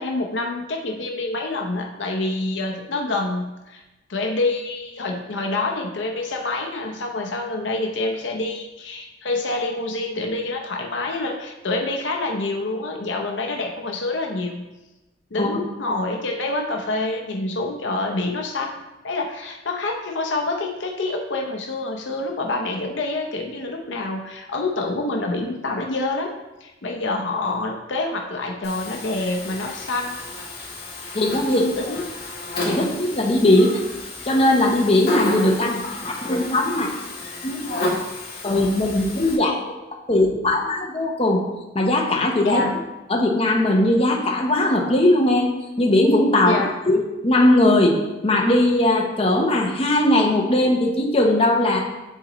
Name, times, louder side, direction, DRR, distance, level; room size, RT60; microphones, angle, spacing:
voice 1, 0.0-3.8 4.1-14.7 15.3-18.8 19.0-26.3 26.6-30.2 31.0-31.2 31.5-32.0 32.6-32.9 42.4-42.8 46.4-46.7, left 2 dB, 70° left, 2 dB, 0.7 m, -27 dB
Buzz, 28.6-39.3, left 2 dB, 50° left, 1.9 m, -31 dB
voice 2, 31.1-31.7 32.7-33.8 34.2-36.9 37.4-37.8 38.4-39.6 40.1-41.4 41.7-42.6 43.1-45.5 45.8-51.8, left 1 dB, 30° left, -1 dB, 0.8 m, -19 dB
10.0 x 3.9 x 3.0 m, 1.0 s
head